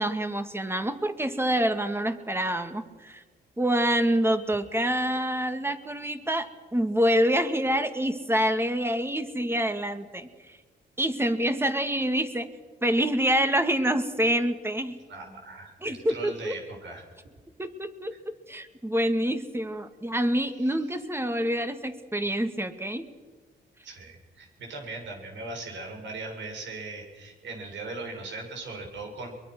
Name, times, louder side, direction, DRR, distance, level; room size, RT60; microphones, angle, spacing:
voice 1, 0.0-3.2 3.6-10.6 11.0-12.5 12.8-15.0 15.8-16.5 17.6-23.1, equal, 10° right, 8 dB, 2.2 m, -26 dB
voice 2, 15.1-17.0 18.1-18.2 20.6-20.7 23.8-29.3, right 3 dB, 75° right, 2 dB, 6.5 m, -39 dB
23.0 x 22.0 x 6.3 m, 1.4 s
cardioid pair, 85°, 19 cm